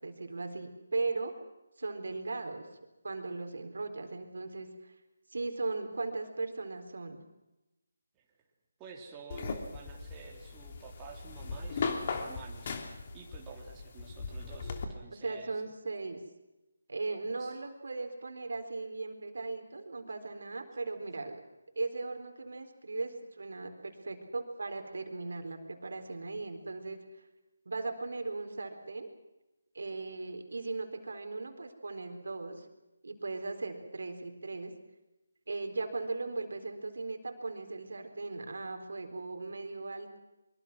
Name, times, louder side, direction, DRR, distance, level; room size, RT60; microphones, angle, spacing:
voice 1, 0.0-1.3 1.8-2.7 3.0-4.9 5.3-7.2 15.1-16.2 16.9-21.4 21.8-27.0 27.7-29.1 29.7-32.7 33.0-34.7 35.5-40.1, right 3 dB, 70° right, 5 dB, 4.1 m, -38 dB
voice 2, 8.8-15.7 17.4-17.6, right 5 dB, 15° right, -1 dB, 3.3 m, -51 dB
sound 1, 9.3-14.9, left 4 dB, 40° left, 3.0 m, -38 dB
23.5 x 23.5 x 6.1 m, 0.99 s
figure-of-eight pair, 155°, 0 cm